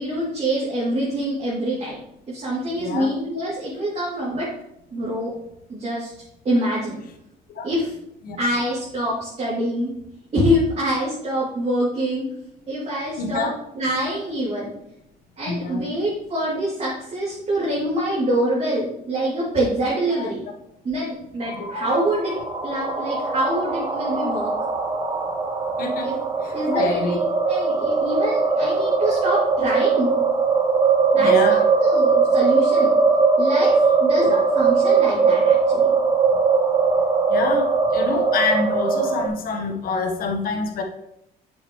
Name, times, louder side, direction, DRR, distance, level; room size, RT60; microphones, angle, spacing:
voice 1, 0.0-2.0 2.3-4.5 4.9-5.3 5.7-6.1 6.4-7.0 7.6-7.9 8.4-9.9 10.3-12.3 12.7-14.7 15.4-20.4 20.8-24.5 26.0-26.1 26.5-30.1 31.1-32.9 33.4-35.9, right 1 dB, 40° right, -8 dB, 2.7 m, -25 dB
voice 2, 2.8-3.1 7.6-7.7 8.2-8.4 13.2-13.5 15.5-15.9 20.2-20.3 21.5-21.9 25.8-26.1 26.4-27.2 31.2-31.6 34.2-34.3 37.3-40.8, left 4 dB, 60° left, 4 dB, 1.2 m, -26 dB
sound 1, 21.4-39.3, right 4 dB, 20° right, 1.0 m, -20 dB
7.6 x 6.4 x 3.1 m, 0.80 s
cardioid pair, 110°, 17 cm